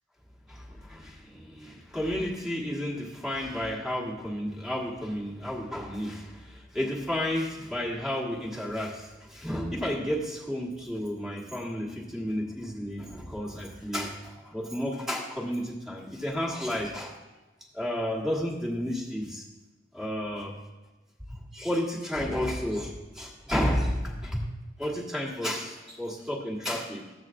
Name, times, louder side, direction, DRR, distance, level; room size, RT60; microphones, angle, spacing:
voice 1, 0.5-17.2 17.7-19.4 19.9-20.6 21.3-24.5 24.8-27.1, equal, 5° right, -2 dB, 1.3 m, -32 dB
14.0 x 7.9 x 2.5 m, 1.2 s
head